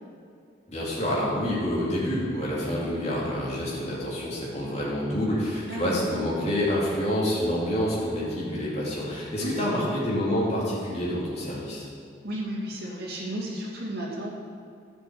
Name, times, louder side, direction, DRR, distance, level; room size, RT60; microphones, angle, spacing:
voice 1, 0.7-11.9, equal, 35° left, -6 dB, 2.5 m, -27 dB
voice 2, 5.6-6.0 9.4-10.0 12.2-14.3, right 1 dB, 55° right, -4 dB, 2.4 m, -33 dB
10.5 x 6.1 x 7.9 m, 2.3 s
head